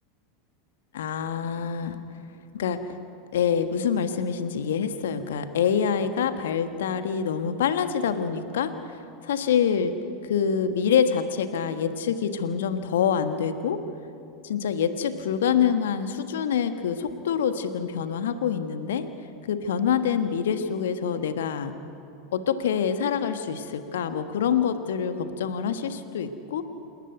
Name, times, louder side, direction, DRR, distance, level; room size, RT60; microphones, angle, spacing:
voice 1, 0.9-2.0 2.5-3.0 3.3-9.9 10.3-13.8 14.4-19.0 19.5-21.7 22.3-26.6, left 7 dB, 65° left, 10 dB, 1.4 m, -26 dB
28.0 x 12.5 x 9.4 m, 2.6 s
figure-of-eight pair, 85°, 0 cm